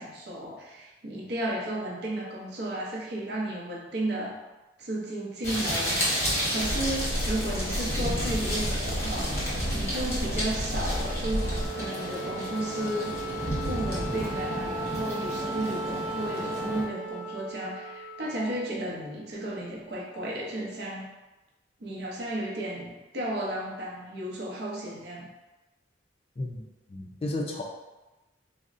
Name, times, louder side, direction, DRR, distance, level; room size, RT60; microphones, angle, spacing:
voice 1, 0.0-4.4 4.8-9.4 9.7-13.1 13.6-21.1 21.8-25.3, right 1 dB, 60° right, -3 dB, 0.6 m, -33 dB
sound 1, 5.4-16.8, equal, 15° left, 0.8 m, -32 dB
sound 2, 6.6-11.7, equal, 80° left, 0.5 m, -32 dB
Wind instrument woodwind instrument, 10.9-19.5, right 2 dB, 10° right, 0.9 m, -37 dB
voice 2, 26.9-27.6, left 2 dB, 30° left, 1 dB, 0.3 m, -32 dB
3.6 x 2.0 x 2.5 m, 1.1 s
head